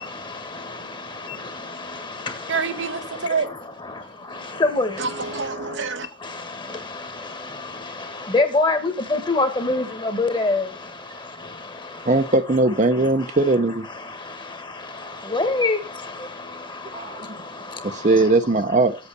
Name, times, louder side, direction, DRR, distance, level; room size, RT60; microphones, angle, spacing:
voice 1, 2.5-3.5 5.0-6.1, right 4 dB, 75° right, 1.0 m, -26 dB
voice 2, 8.3-9.8 10.2-10.6 15.3-15.8, left 3 dB, 25° left, 1.5 m, -20 dB
voice 3, 12.1-13.9 16.9-17.3 17.8-19.0, right 2 dB, 40° right, 0.7 m, -19 dB
8.2 x 5.6 x 6.7 m
head